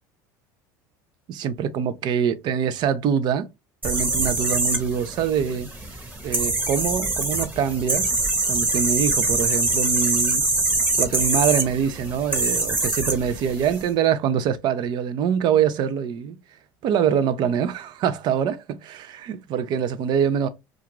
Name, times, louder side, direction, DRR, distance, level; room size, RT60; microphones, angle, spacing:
voice 1, 1.3-3.5 3.8-5.7 6.2-8.1 8.5-10.5 11.0-16.4 16.8-20.5, right 8 dB, 50° right, 0.5 m, -24 dB
sound 1, 3.8-13.8, right 2 dB, 20° right, 1.0 m, -24 dB
2.4 x 2.4 x 2.9 m
supercardioid pair, 105°, 9 cm